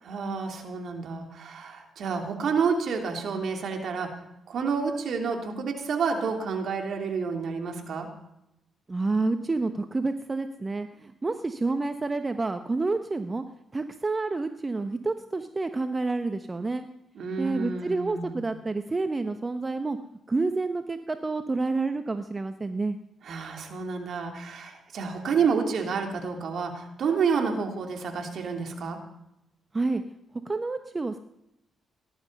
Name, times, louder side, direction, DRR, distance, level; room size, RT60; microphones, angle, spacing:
voice 1, 0.0-4.1 4.5-8.1 17.1-18.4 23.2-29.0, right 5 dB, 60° right, 3 dB, 3.1 m, -29 dB
voice 2, 8.9-13.4 13.7-16.9 17.4-20.0 20.3-23.0 29.7-30.0 30.4-31.2, right 3 dB, 30° right, 9 dB, 1.1 m, -29 dB
18.5 x 12.0 x 5.5 m, 0.84 s
hypercardioid pair, 45°, 0 cm